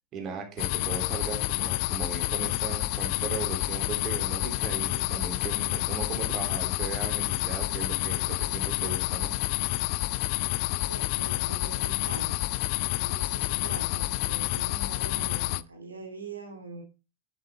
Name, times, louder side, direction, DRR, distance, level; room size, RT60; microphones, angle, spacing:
voice 1, 0.1-9.3 13.5-13.6, right 5 dB, 30° right, 3.3 m, -38 dB
sound 1, 0.6-15.6, left 19 dB, 45° left, 0.5 m, -29 dB
voice 2, 10.6-12.4 12.9-16.8, right 3 dB, 80° right, 2.3 m, -43 dB
10.5 x 8.0 x 3.7 m
figure-of-eight pair, 90°, 0 cm